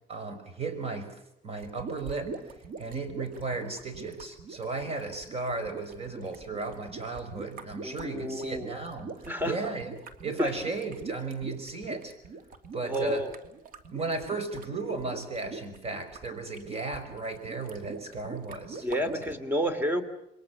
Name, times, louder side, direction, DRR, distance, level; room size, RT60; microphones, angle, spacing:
voice 1, 0.1-9.9 10.2-12.1 12.7-13.2 13.9-19.2, right 3 dB, 35° right, 9 dB, 5.7 m, -35 dB
sound 1, 1.6-19.3, right 4 dB, 55° right, 2.6 m, -43 dB
voice 2, 7.8-8.7 9.3-9.5 10.4-10.5 12.8-13.3 18.8-20.0, equal, 10° right, 11 dB, 3.2 m, -30 dB
28.5 x 22.0 x 7.3 m, 0.83 s
cardioid pair, 110°, 17 cm